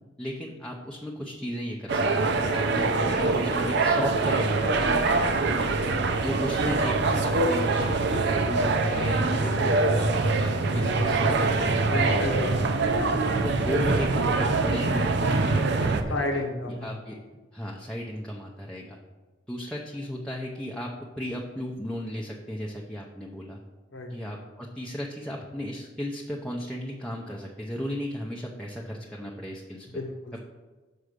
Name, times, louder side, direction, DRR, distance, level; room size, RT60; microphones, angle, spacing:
voice 1, 0.2-5.1 6.2-12.4 13.4-16.4 16.7-17.2 17.5-19.0 19.5-23.6 24.1-29.9 30.3-30.4, equal, 5° left, -3 dB, 0.7 m, -35 dB
sound 1, 1.9-16.0, right 3 dB, 65° right, 0.7 m, -24 dB
voice 2, 5.6-6.0 11.9-12.5 12.8-13.2 16.1-17.0 23.9-24.1 29.9-30.3, left 2 dB, 85° left, 2 dB, 0.9 m, -32 dB
6.3 x 4.8 x 6.5 m, 1.2 s
head